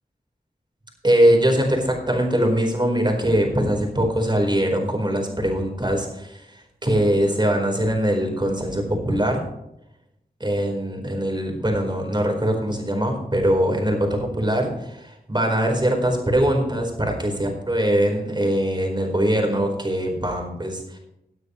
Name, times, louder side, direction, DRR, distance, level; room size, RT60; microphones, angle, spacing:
voice 1, 1.0-9.4 10.4-21.0, right 1 dB, 30° right, 2 dB, 4.4 m, -22 dB
18.0 x 9.4 x 3.2 m, 0.84 s
cardioid pair, 45°, 16 cm